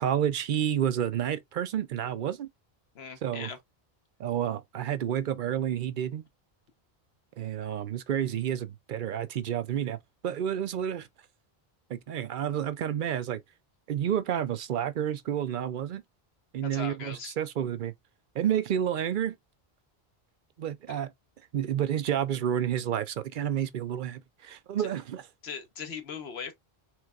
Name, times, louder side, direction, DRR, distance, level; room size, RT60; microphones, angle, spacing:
voice 1, 0.0-2.5 3.2-3.5 4.2-6.2 7.4-10.0 10.2-11.1 11.9-13.4 13.9-16.0 16.5-17.9 18.3-19.4 20.6-21.1 21.5-25.3, right 10 dB, 60° right, 0.6 m, -30 dB
voice 2, 2.9-3.6 16.6-17.3 20.9-21.0 24.8-24.9 25.4-26.5, left 6 dB, 80° left, 1.2 m, -39 dB
4.5 x 3.3 x 2.4 m
omnidirectional pair, 1.0 m